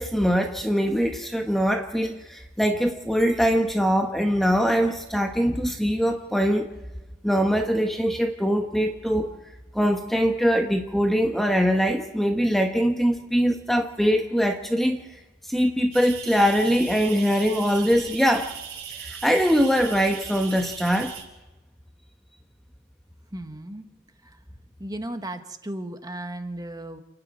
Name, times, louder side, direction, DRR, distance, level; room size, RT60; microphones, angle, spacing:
voice 1, 0.0-6.7 7.2-9.3 9.7-15.0 15.5-18.5 18.9-21.1, equal, ahead, 4 dB, 1.0 m, -22 dB
sound 1, 15.9-21.2, right 8 dB, 85° right, 4.7 m, -38 dB
voice 2, 23.3-23.9 24.2-24.4 24.8-27.0, right 1 dB, 20° right, 7 dB, 1.3 m, -35 dB
28.0 x 9.7 x 9.5 m, 1.1 s
head